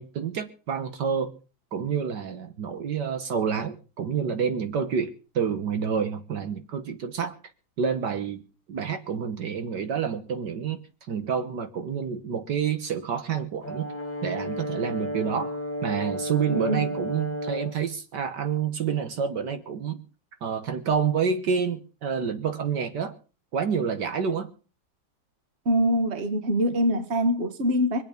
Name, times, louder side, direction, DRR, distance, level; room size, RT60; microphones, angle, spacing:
voice 1, 0.0-1.3 1.7-7.4 7.8-8.4 8.7-10.8 11.1-13.9 14.2-15.6 15.8-20.0 20.4-23.2 23.5-24.5, right 7 dB, 65° right, 1.8 m, -28 dB
Brass instrument, 13.6-17.8, equal, 10° left, 1.6 m, -32 dB
voice 2, 16.5-16.9 25.6-28.0, equal, 35° right, 1.7 m, -24 dB
24.5 x 8.8 x 5.2 m
omnidirectional pair, 2.1 m